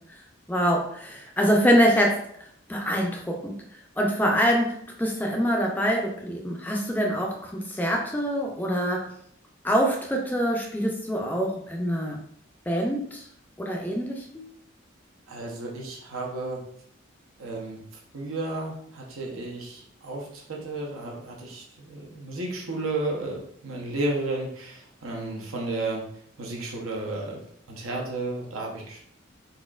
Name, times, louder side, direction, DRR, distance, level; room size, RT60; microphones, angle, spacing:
voice 1, 0.5-2.2 2.7-3.6 4.0-9.1 9.6-12.2 12.7-13.3 13.6-14.5, equal, 10° left, 0 dB, 0.4 m, -25 dB
voice 2, 15.3-16.6 17.4-17.8 18.1-26.0 26.4-29.0, right 2 dB, 80° right, -1 dB, 0.8 m, -33 dB
4.1 x 2.4 x 2.4 m, 0.67 s
head